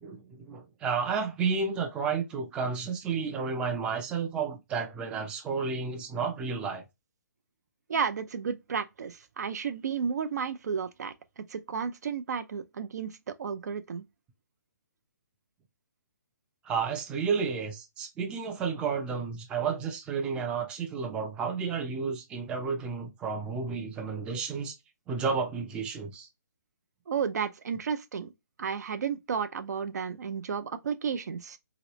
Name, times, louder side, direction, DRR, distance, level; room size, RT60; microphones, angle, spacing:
voice 1, 0.0-6.8 16.6-24.8 25.1-26.3, right 5 dB, 10° right, 0.4 m, -31 dB
voice 2, 7.9-14.0 27.1-28.3 28.6-31.6, right 6 dB, 65° right, 0.5 m, -32 dB
3.0 x 2.9 x 2.9 m
hypercardioid pair, 155°, 10 cm